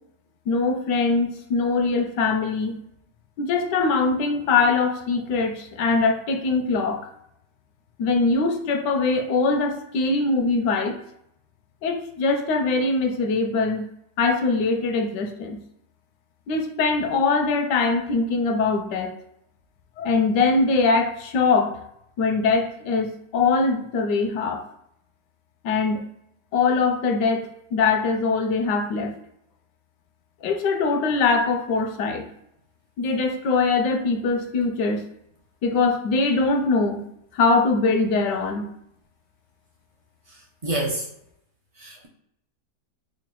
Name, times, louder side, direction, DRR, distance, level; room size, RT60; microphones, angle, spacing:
voice 1, 0.5-2.8 3.4-7.0 8.0-11.0 11.8-13.9 14.2-15.6 16.5-19.1 20.0-21.8 22.2-24.6 25.6-26.0 26.5-29.1 30.4-32.3 33.0-35.0 35.6-37.1 37.3-38.6, left 4 dB, 85° left, 5 dB, 1.3 m, -22 dB
voice 2, 40.3-41.1 41.8-42.1, right 1 dB, 60° right, -2 dB, 0.3 m, -29 dB
5.0 x 2.2 x 4.5 m, 0.75 s
omnidirectional pair, 1.8 m